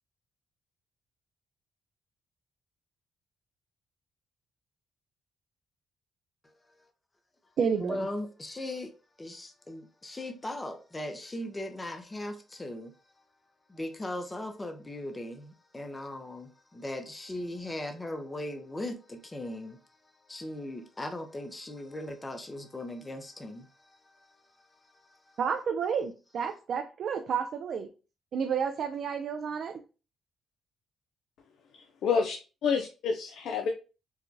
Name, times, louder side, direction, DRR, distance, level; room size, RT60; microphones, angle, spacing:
voice 1, 6.4-6.8 7.8-8.9 9.2-12.9 13.7-25.4, left 1 dB, 20° left, 0.6 m, -39 dB
voice 2, 7.6-8.1 25.4-27.9 28.3-29.7, right 6 dB, 60° right, 0.4 m, -30 dB
voice 3, 31.7-32.4 32.6-33.7, left 5 dB, 75° left, 0.4 m, -28 dB
4.7 x 2.2 x 2.6 m
cardioid pair, 90°, 0 cm